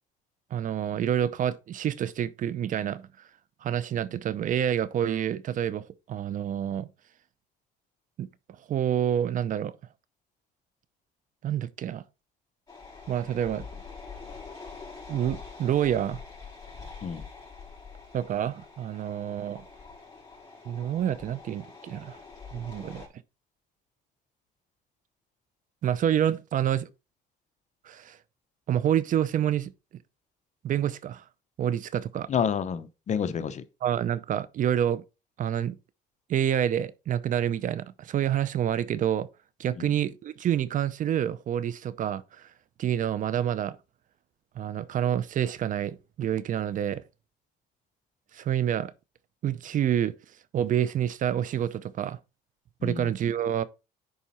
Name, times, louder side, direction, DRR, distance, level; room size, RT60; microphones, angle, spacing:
voice 1, 0.5-3.1 3.6-6.9 8.2-8.3 8.7-9.7 11.4-12.0 13.1-13.6 15.1-16.2 18.1-19.6 20.7-22.2 22.5-23.1 25.8-26.9 27.9-28.2 28.7-29.7 30.6-31.2 31.6-32.3 33.8-35.0 35.4-35.8 36.3-39.3 39.6-42.5 42.8-43.8 44.6-47.0 48.3-48.9 49.4-50.1 50.5-52.2 52.8-53.6, right 10 dB, 50° right, 0.6 m, -28 dB
sound 1, 12.7-23.1, left 4 dB, 20° left, 4.3 m, -45 dB
voice 2, 32.3-33.6 39.8-39.9 52.8-53.1, left 7 dB, 45° left, 0.8 m, -29 dB
10.5 x 4.2 x 4.2 m
cardioid pair, 110°, 17 cm